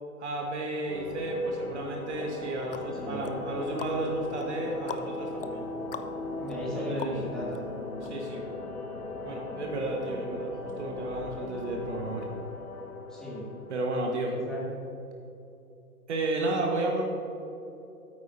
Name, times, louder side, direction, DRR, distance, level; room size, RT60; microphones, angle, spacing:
voice 1, 0.2-5.6 6.7-7.2 8.0-8.4 9.2-12.3 13.7-14.3 16.1-17.0, right 2 dB, 50° right, 1 dB, 1.5 m, -32 dB
sound 1, 0.9-14.4, left 2 dB, 75° left, 1.4 m, -38 dB
sound 2, 2.2-7.6 8.0-8.1, left 6 dB, 40° left, 0.4 m, -44 dB
voice 2, 2.9-3.3 6.4-7.6 13.1-13.4 14.3-14.7, left 1 dB, ahead, -8 dB, 2.1 m, -36 dB
13.5 x 8.8 x 2.7 m, 2.9 s
figure-of-eight pair, 120°, 45 cm